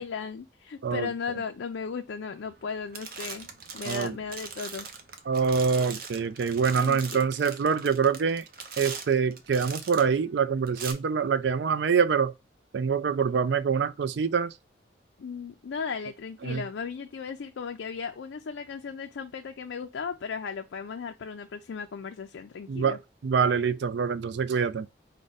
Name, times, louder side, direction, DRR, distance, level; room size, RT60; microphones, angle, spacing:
voice 1, 0.0-3.5 3.7-4.9 6.7-7.3 15.2-23.0, left 5 dB, 80° left, 0.4 m, -36 dB
sound 1, 2.4-2.7 2.9-10.2 10.7-10.9, right 5 dB, 50° right, 0.7 m, -40 dB
voice 2, 3.9-4.2 5.3-8.4 8.8-12.3 12.7-14.5 16.4-16.6 22.7-23.0 23.2-24.9, right 6 dB, 65° right, 0.4 m, -25 dB
4.8 x 2.2 x 3.9 m
head